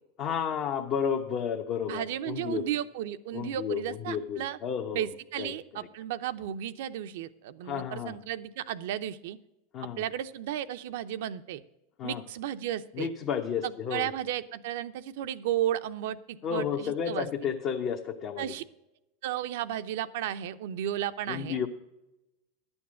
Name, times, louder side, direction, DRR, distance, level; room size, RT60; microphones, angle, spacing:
voice 1, 0.2-2.6 3.3-5.1 5.4-5.5 7.6-8.2 9.7-10.0 12.0-12.2 12.9-14.1 16.4-18.5 21.3-21.7, left 7 dB, 45° left, 1 dB, 1.0 m, -32 dB
voice 2, 1.9-4.6 4.9-9.4 10.0-11.6 12.0-13.1 13.6-17.3 18.4-18.6 19.2-21.6, right 11 dB, 70° right, 12 dB, 0.6 m, -34 dB
11.0 x 7.1 x 6.2 m, 0.94 s
hypercardioid pair, 105°, 0 cm